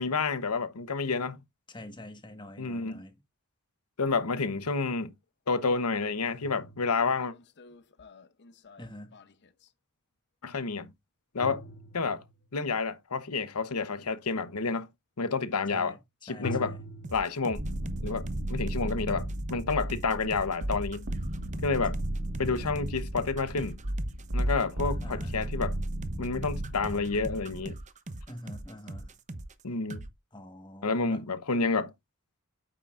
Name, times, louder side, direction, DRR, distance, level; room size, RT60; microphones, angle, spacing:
voice 1, 0.0-1.4 2.6-3.0 4.0-5.1 5.5-7.3 10.4-10.9 11.3-11.6 11.9-12.2 12.5-14.9 15.2-16.0 16.2-16.8 17.1-17.6 18.0-21.1 21.6-22.0 22.4-23.8 24.3-25.8 26.2-27.7 29.6-30.1 30.8-31.9, left 4 dB, 80° left, 1.0 m, -29 dB
voice 2, 1.7-3.1 8.8-9.1 15.7-16.0 16.3-16.8 25.0-25.4 28.3-29.1 30.3-31.2, left 1 dB, 20° left, 1.4 m, -45 dB
sound 1, 5.0-5.1 6.0-9.7 11.4-12.5 16.4-17.1, left 1 dB, 50° left, 0.7 m, -43 dB
sound 2, 17.0-29.6 29.9-30.1, right 2 dB, 35° right, 0.8 m, -42 dB
sound 3, 17.6-27.6, right 1 dB, 65° right, 1.7 m, -34 dB
8.9 x 6.8 x 2.5 m
head